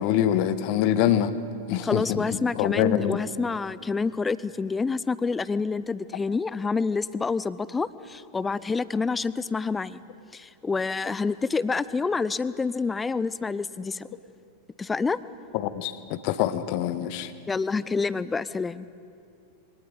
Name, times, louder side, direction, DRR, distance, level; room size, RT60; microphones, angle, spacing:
voice 1, 0.0-1.3 1.7-3.2 15.5-17.3, left 11 dB, 45° left, 13 dB, 1.2 m, -25 dB
voice 2, 1.8-10.0 10.3-14.1 14.8-15.2 17.5-18.9, left 4 dB, 15° left, 17 dB, 0.7 m, -27 dB
24.0 x 18.5 x 9.9 m, 2.5 s
figure-of-eight pair, 90°, 0 cm